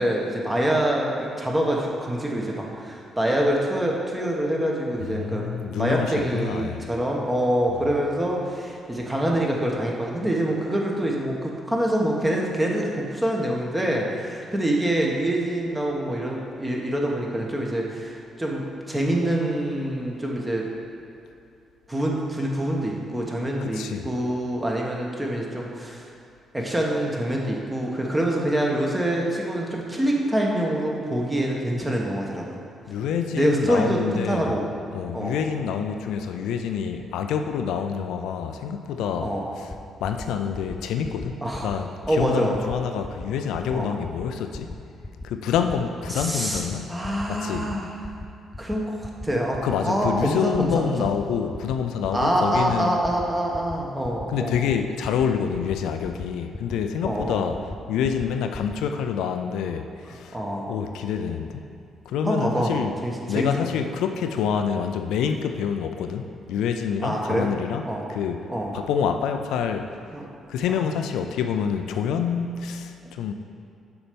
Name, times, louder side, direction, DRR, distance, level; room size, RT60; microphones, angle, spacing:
voice 1, 0.0-5.4 5.8-20.7 21.9-26.0 26.5-32.6 33.3-34.6 35.1-35.3 39.2-39.5 41.4-41.7 42.1-42.6 43.7-43.9 46.1-46.6 46.9-47.9 48.6-51.1 52.1-54.6 57.0-57.4 60.3-60.7 62.2-62.7 63.0-63.7 67.0-67.5 67.9-68.0 68.5-68.7 70.1-70.3, right 1 dB, 15° right, -1 dB, 1.2 m, -25 dB
voice 2, 5.0-6.9 23.6-24.1 32.9-34.5 34.9-39.7 40.0-44.7 45.2-46.9 47.3-47.7 49.6-53.0 54.3-57.6 57.9-61.7 62.1-63.0 63.3-68.5 68.7-70.0 70.5-73.3, left 7 dB, 85° left, 6 dB, 0.4 m, -27 dB
sound 1, 39.7-39.8 40.0-40.3 40.5-40.8 41.0-41.3 41.5-41.8 42.0-42.3 42.5-42.8 43.0-43.3 43.5-43.8 44.0-44.3 44.5-44.8 45.0-45.3 45.5-45.8 46.0-46.3 46.5-46.8 47.0-47.3 47.5-47.8 48.0-48.3 48.5-48.8 49.0-49.3 49.5-49.8 50.0-50.3 50.5-50.7 51.0-51.2 51.5-51.8 52.0-52.3 52.5-52.8 53.0-53.3 53.5-53.8 54.0-54.2 54.5-54.7 55.0-55.3 55.5-55.8 56.0-56.3 56.5-56.8 57.0-57.3 57.5-57.8 58.0-58.3 58.5-58.7, left 2 dB, 25° left, 0.5 m, -36 dB
6.8 x 4.4 x 5.2 m, 2.5 s
cardioid pair, 90°, 0 cm